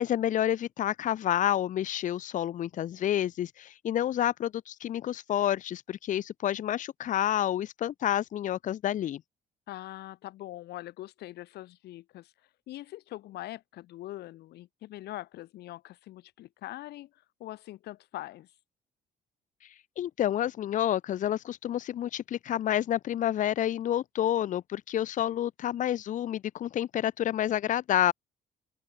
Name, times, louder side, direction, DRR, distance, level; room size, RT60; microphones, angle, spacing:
voice 1, 0.0-9.2 20.0-28.1, left 11 dB, 50° left, 0.7 m, -29 dB
voice 2, 9.7-18.6, left 15 dB, 75° left, 3.1 m, -43 dB
open air
cardioid pair, 110°, 17 cm